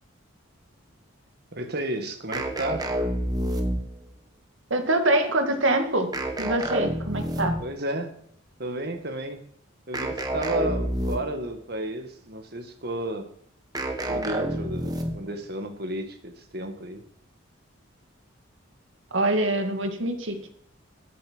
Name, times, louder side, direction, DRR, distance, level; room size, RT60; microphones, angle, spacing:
voice 1, 1.5-2.8 7.6-8.1 8.6-9.4 9.9-13.3 14.1-17.0, right 1 dB, 50° right, 6 dB, 1.8 m, -32 dB
sound 1, 2.3-4.1 6.1-7.8 9.9-11.5 13.7-15.3, right 1 dB, 20° right, 1.3 m, -29 dB
voice 2, 4.7-6.1 6.4-7.6 19.1-20.5, right 1 dB, 70° right, 6 dB, 2.0 m, -24 dB
13.5 x 7.5 x 6.2 m, 0.66 s
head